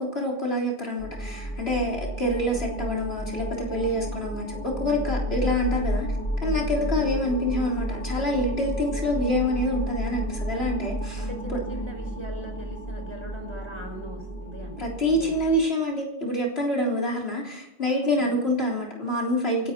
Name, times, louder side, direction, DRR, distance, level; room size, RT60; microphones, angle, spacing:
voice 1, 0.0-6.1 6.4-11.2 11.5-11.6 14.8-19.7, left 1 dB, 80° left, -1 dB, 4.0 m, -26 dB
sound 1, 1.0-15.6, equal, 55° left, 3.1 m, -32 dB
voice 2, 11.2-15.5 18.2-18.3, equal, 25° right, 1 dB, 5.0 m, -41 dB
28.0 x 10.5 x 4.5 m, 0.76 s
omnidirectional pair, 1.0 m